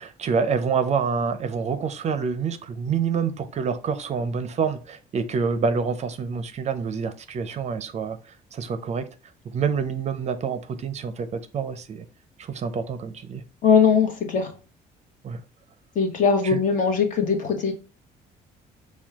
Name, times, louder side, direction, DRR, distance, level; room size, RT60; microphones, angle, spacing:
voice 1, 0.0-8.2 8.5-9.1 9.5-12.0 12.4-13.4 15.2-15.4 16.4-16.6, right 5 dB, 40° right, 0.5 m, -27 dB
voice 2, 13.6-14.5 15.9-17.7, left 6 dB, 50° left, 1.1 m, -20 dB
4.4 x 2.3 x 3.5 m
cardioid pair, 110°, 17 cm